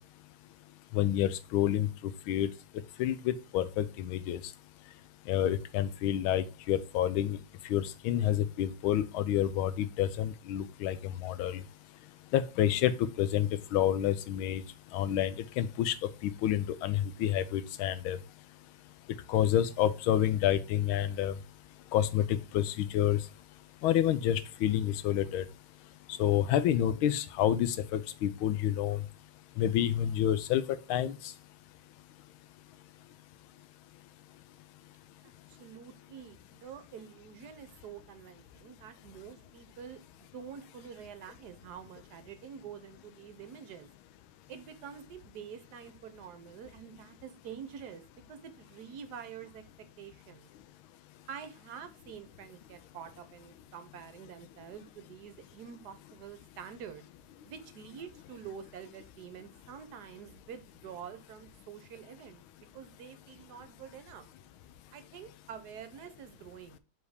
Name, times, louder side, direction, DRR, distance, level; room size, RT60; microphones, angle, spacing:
voice 1, 0.9-1.9 2.3-2.5 3.0-4.4 5.3-7.4 7.7-11.0 11.2-11.6 12.3-14.6 14.9-15.9 16.4-18.2 19.3-21.3 21.9-23.2 23.8-25.4 26.2-29.0 29.6-30.6 30.9-31.2, left 11 dB, 85° left, 1.5 m, -28 dB
voice 2, 35.2-40.0 40.3-43.9 44.5-48.0 48.3-49.6 50.0-50.5 51.3-57.0 57.4-62.4 62.7-64.3 64.9-66.8, right 7 dB, 65° right, 1.2 m, -47 dB
5.0 x 4.1 x 4.9 m
omnidirectional pair, 2.2 m